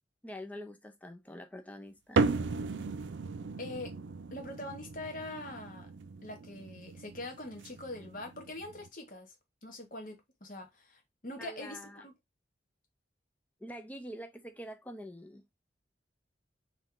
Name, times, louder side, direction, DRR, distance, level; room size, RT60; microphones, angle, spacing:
voice 1, 0.2-2.3 11.4-12.1 13.6-15.4, equal, 10° left, 0.5 m, -45 dB
sound 1, 2.2-8.9, right 4 dB, 85° right, 0.5 m, -36 dB
voice 2, 3.6-4.0 4.3-5.9 6.2-9.3 9.6-12.1, left 2 dB, 45° left, 1.2 m, -43 dB
3.2 x 3.1 x 3.7 m
head